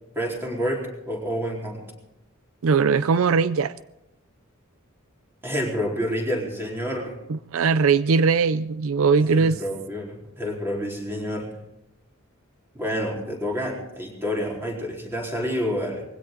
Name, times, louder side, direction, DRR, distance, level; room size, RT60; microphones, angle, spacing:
voice 1, 0.2-1.8 5.4-7.2 9.2-11.5 12.7-16.0, equal, 10° right, -2 dB, 4.1 m, -28 dB
voice 2, 2.6-3.7 7.3-9.6, right 5 dB, 75° right, 15 dB, 0.5 m, -20 dB
21.0 x 16.0 x 3.9 m, 0.92 s
head